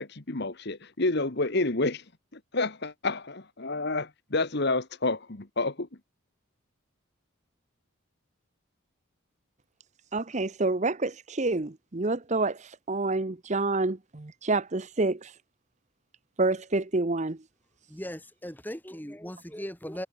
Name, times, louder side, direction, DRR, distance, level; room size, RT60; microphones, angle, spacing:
voice 1, 0.0-2.0 2.3-5.9, left 2 dB, 50° left, 1.4 m, -29 dB
voice 2, 10.1-15.3 16.4-17.4, right 3 dB, 35° right, 0.8 m, -28 dB
voice 3, 17.9-20.1, equal, 10° left, 7.1 m, -38 dB
head